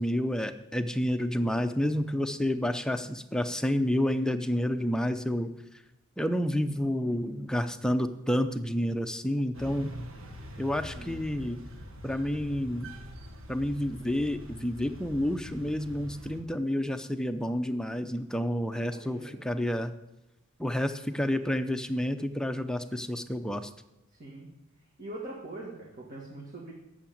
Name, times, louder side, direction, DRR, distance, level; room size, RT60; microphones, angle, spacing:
voice 1, 0.0-5.5 6.2-9.9 10.6-11.6 12.0-12.9 13.5-19.9 20.6-23.7, left 1 dB, 5° left, 8 dB, 0.6 m, -29 dB
sound 1, 9.5-16.4, equal, 75° right, 1.5 m, -44 dB
voice 2, 18.7-19.4 24.1-24.5 25.0-26.7, right 2 dB, 40° right, -3 dB, 2.0 m, -43 dB
8.7 x 7.3 x 8.6 m, 0.95 s
head